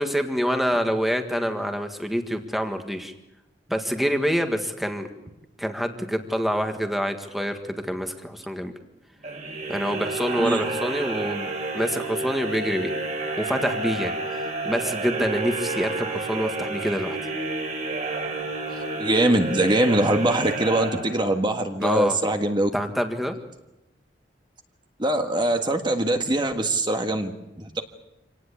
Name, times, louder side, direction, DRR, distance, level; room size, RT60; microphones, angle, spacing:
voice 1, 0.0-3.1 3.7-5.1 5.6-8.7 9.7-12.9 13.4-17.2 21.8-22.2 22.7-23.3, equal, ahead, 5 dB, 1.6 m, -26 dB
sound 1, 9.2-21.5, right 3 dB, 40° right, 3.6 m, -30 dB
voice 2, 19.0-22.7 25.0-27.8, right 1 dB, 25° right, 5 dB, 1.6 m, -23 dB
26.0 x 18.5 x 8.5 m, 0.94 s
head